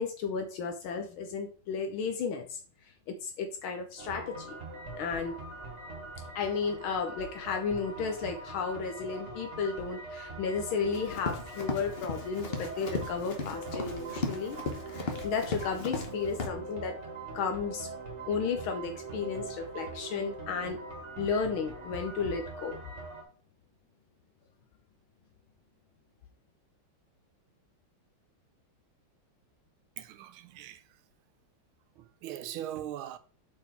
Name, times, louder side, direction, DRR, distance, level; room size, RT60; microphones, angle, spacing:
voice 1, 0.0-2.6 3.1-4.6 5.0-5.4 6.3-14.6 14.9-17.0 17.3-17.9 18.3-20.8 21.2-22.8, left 5 dB, 80° left, 1.6 m, -33 dB
sound 1, 4.0-23.2, right 2 dB, 35° right, 1.6 m, -42 dB
Run, 10.9-16.1 16.4-16.5, left 3 dB, 45° left, 0.8 m, -36 dB
voice 2, 30.0-30.8 32.0-33.2, right 11 dB, 80° right, 1.5 m, -40 dB
5.6 x 4.5 x 4.5 m
omnidirectional pair, 2.3 m